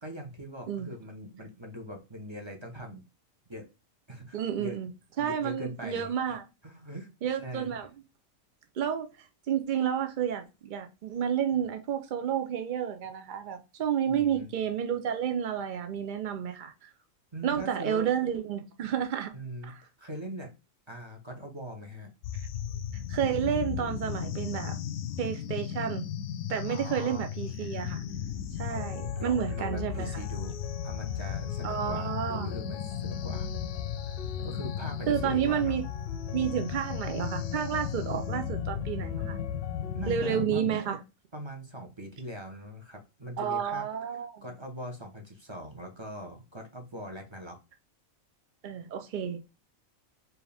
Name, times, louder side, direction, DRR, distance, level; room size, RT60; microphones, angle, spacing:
voice 1, 0.0-3.0 3.5-3.7 4.1-4.8 5.2-6.4 6.6-7.1 7.4-7.8 14.1-14.5 16.9-17.0 17.3-18.1 19.3-20.5 20.9-22.1 26.7-27.3 28.7-28.8 29.2-30.5 30.8-33.5 34.1-35.8 39.9-40.7 41.3-43.9 44.4-47.6, equal, 25° right, 0.8 m, -41 dB
voice 2, 4.3-4.9 5.2-6.4 7.2-7.9 8.8-16.9 17.4-19.3 19.6-19.8 22.9-24.7 25.2-26.0 26.5-28.0 28.6-30.2 31.6-32.5 35.1-35.8 36.3-39.4 40.1-41.0 43.4-44.4 48.6-49.4, right 9 dB, 65° right, 0.5 m, -31 dB
sound 1, 22.2-40.8, left 9 dB, 85° left, 1.0 m, -35 dB
sound 2, 28.8-40.4, left 7 dB, 55° left, 0.7 m, -46 dB
4.5 x 2.7 x 3.3 m
omnidirectional pair, 1.4 m